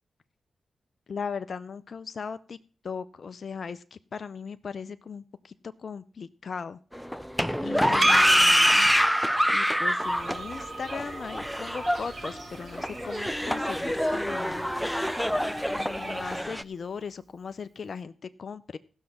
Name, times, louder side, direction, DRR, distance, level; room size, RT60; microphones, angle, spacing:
voice 1, 1.1-2.6 2.8-6.8 7.6-9.0 9.5-14.7 15.7-18.1 18.4-18.8, left 5 dB, 65° left, 12 dB, 0.5 m, -38 dB
sound 1, 6.9-16.6, equal, ahead, 0.6 m, -25 dB
Percussion, 8.0-12.8, right 3 dB, 50° right, 0.8 m, -33 dB
sound 2, 10.0-16.4, right 3 dB, 75° right, 3.7 m, -46 dB
15.5 x 6.4 x 5.8 m, 0.39 s
supercardioid pair, 40°, 0 cm